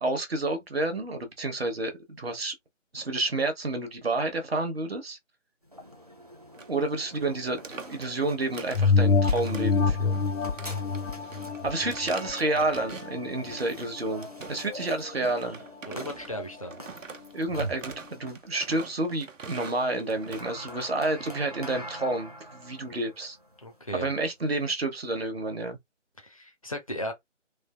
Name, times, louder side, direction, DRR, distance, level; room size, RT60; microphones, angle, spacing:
voice 1, 0.0-2.5 2.9-5.2 6.7-10.3 11.6-15.6 17.3-23.4 23.9-25.8, right 2 dB, 55° right, 0.9 m, -30 dB
sound 1, 5.6-24.7, equal, 35° right, 0.4 m, -45 dB
sound 2, 6.5-6.8 7.1-7.2 7.5-8.9 9.3-9.9 10.1-13.2 13.5-14.8 15.1-21.4, right 5 dB, 85° right, 0.8 m, -44 dB
sound 3, 8.7-13.7 14.2-14.3, left 4 dB, 80° left, 0.6 m, -26 dB
voice 2, 15.9-16.8 23.6-24.1 26.2-27.1, equal, 30° left, 0.6 m, -36 dB
3.3 x 2.5 x 2.3 m
figure-of-eight pair, 160°, 37 cm